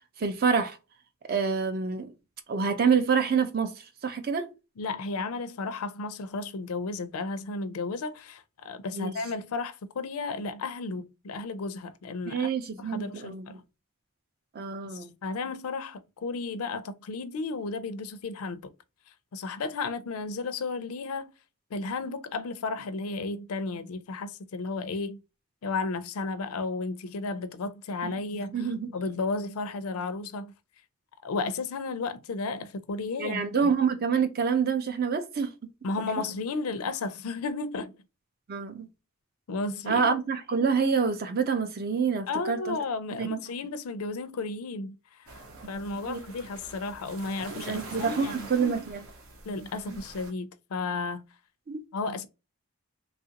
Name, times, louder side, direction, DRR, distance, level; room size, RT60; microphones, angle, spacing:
voice 1, 0.2-0.8 1.3-2.1 2.5-3.7 4.0-4.5 8.9-9.1 12.3-13.6 14.5-15.1 28.0-28.1 28.5-28.9 33.2-35.5 38.5-38.9 39.9-42.8 43.2-43.4 46.1-46.2 47.6-49.1 49.9-50.0 51.7-51.8, right 5 dB, 45° right, 0.5 m, -27 dB
voice 2, 4.8-12.5 12.8-13.6 14.8-18.7 19.3-21.3 21.7-25.2 25.6-30.5 31.2-33.7 35.8-37.9 39.5-40.2 42.3-45.4 45.7-48.5 49.5-51.2 51.9-52.3, left 3 dB, 85° left, 0.5 m, -33 dB
sound 1, 45.3-50.3, right 2 dB, 80° right, 0.8 m, -45 dB
3.1 x 2.4 x 2.8 m
head